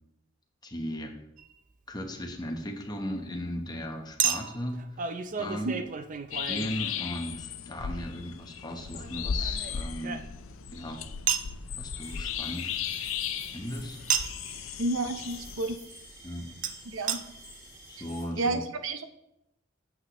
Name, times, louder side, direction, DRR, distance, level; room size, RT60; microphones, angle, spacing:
voice 1, 0.6-1.2 1.9-5.8 6.4-10.2 10.7-11.0 11.8-13.0 13.5-14.1 16.2-16.5 17.9-18.6, equal, 20° left, 3 dB, 1.0 m, -37 dB
Chink clink, 1.4-1.5 4.2-7.4 8.9-10.6 11.3-11.5 14.1-14.5 16.6-16.7 17.1-17.2 17.9-18.0 18.1-18.2, right 8 dB, 40° right, 0.5 m, -32 dB
sound 1, 6.3-15.8, left 7 dB, 90° left, 0.5 m, -36 dB
sound 2, 12.0-18.2, right 1 dB, 15° right, 3.0 m, -49 dB
voice 2, 14.8-15.8 16.9-17.2 18.4-19.0, right 2 dB, 80° right, 9 dB, 0.7 m, -30 dB
8.6 x 8.0 x 3.0 m, 0.85 s
head